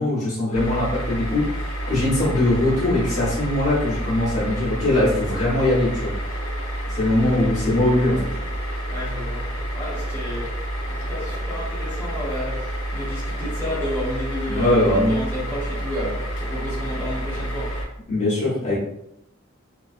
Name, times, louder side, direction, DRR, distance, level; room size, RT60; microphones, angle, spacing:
voice 1, 0.0-6.1 6.9-8.4 14.5-15.1 18.1-18.8, left 1 dB, 35° left, -7 dB, 0.8 m, -21 dB
sound 1, 0.5-17.9, right 1 dB, 85° left, 0.5 m, -29 dB
voice 2, 8.9-10.6 10.9-14.8 15.1-17.8, left 1 dB, 10° left, -8 dB, 0.9 m, -31 dB
2.3 x 2.2 x 2.4 m, 0.78 s
head